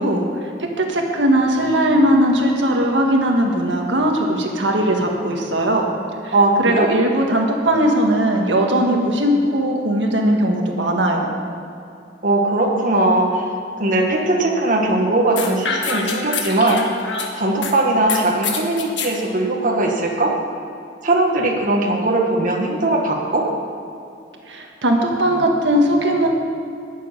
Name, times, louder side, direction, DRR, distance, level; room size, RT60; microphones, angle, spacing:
voice 1, 0.0-5.9 6.2-11.3 24.4-26.3, right 1 dB, 85° right, 1 dB, 1.7 m, -19 dB
voice 2, 6.3-6.9 12.2-13.4 13.8-16.8 17.3-20.3 21.0-23.4, right 2 dB, 50° right, -1 dB, 1.5 m, -19 dB
sound 1, 15.4-17.7 18.1-19.1, left 4 dB, 90° left, 1.5 m, -26 dB
11.0 x 7.5 x 9.7 m, 2.5 s
head